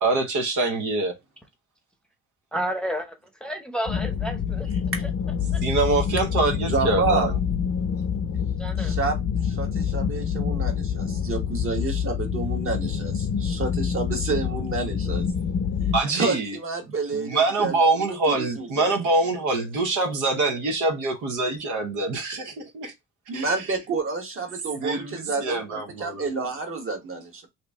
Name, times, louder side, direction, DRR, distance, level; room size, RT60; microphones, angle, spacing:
voice 1, 0.0-1.2 5.6-7.4 15.9-16.6 17.1-22.9 23.3-23.6 24.8-26.2, right 3 dB, 80° right, 1.0 m, -25 dB
voice 2, 2.5-3.1 3.4-4.7 8.6-8.9, equal, 5° left, 0.7 m, -30 dB
sound 1, 3.9-16.0, left 7 dB, 50° left, 0.6 m, -27 dB
voice 3, 6.7-7.3 8.8-9.2 9.4-15.2 16.1-17.8 18.1-18.9 23.3-27.5, right 4 dB, 45° right, 1.3 m, -29 dB
2.9 x 2.6 x 3.4 m
cardioid pair, 90°, 30 cm